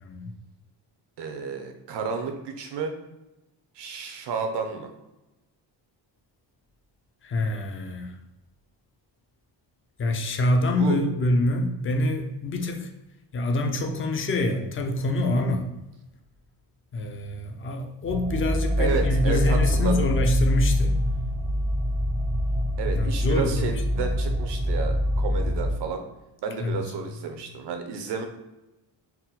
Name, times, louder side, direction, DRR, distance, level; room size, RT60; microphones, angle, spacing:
voice 1, 0.0-0.3 7.2-8.1 10.0-12.9 13.3-15.7 16.9-21.0 22.9-24.0 26.6-26.8, left 1 dB, 30° left, 4 dB, 0.4 m, -26 dB
voice 2, 1.2-2.9 3.8-4.9 10.8-11.0 18.8-20.1 22.8-26.0 26.4-28.3, right 5 dB, 70° right, 5 dB, 0.7 m, -31 dB
sound 1, 18.1-25.7, equal, 40° right, 0.4 m, -25 dB
4.2 x 2.1 x 3.9 m, 0.97 s
cardioid pair, 175°, 43 cm